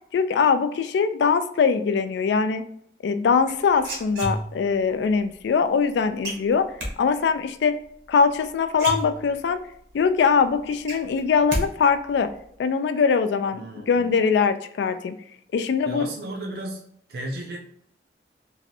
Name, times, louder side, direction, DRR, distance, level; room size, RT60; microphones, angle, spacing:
voice 1, 0.1-2.6 3.0-6.7 7.0-7.8 8.1-9.6 9.9-12.3 12.6-15.2 15.5-16.1, left 5 dB, 80° left, 10 dB, 0.3 m, -22 dB
sound 1, 3.5-4.8 6.2-6.9 8.3-8.4 8.7-9.6 10.0-10.1 10.4-11.7 11.9-12.4, right 1 dB, 85° right, 0.9 m, -30 dB
voice 2, 13.5-14.1 15.5-16.8 17.1-17.6, right 1 dB, 60° right, 1 dB, 0.5 m, -34 dB
3.1 x 2.6 x 2.6 m, 0.67 s
head